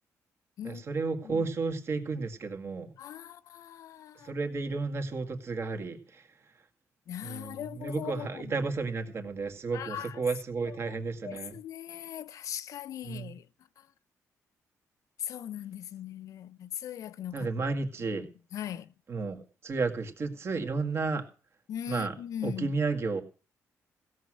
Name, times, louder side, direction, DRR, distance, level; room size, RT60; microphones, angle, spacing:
voice 1, 0.6-2.9 4.2-6.3 7.2-11.5 13.0-13.3 17.3-18.3 19.1-21.2 21.9-22.1 22.4-23.2, right 4 dB, 45° right, 2.1 m, -32 dB
voice 2, 3.0-4.3 7.1-8.6 9.7-10.2 10.7-10.9 11.2-13.4 15.2-17.5 18.1-18.2 18.5-18.9 21.7-22.8, left 10 dB, 70° left, 0.6 m, -40 dB
16.5 x 6.4 x 7.7 m
cardioid pair, 120°, 6 cm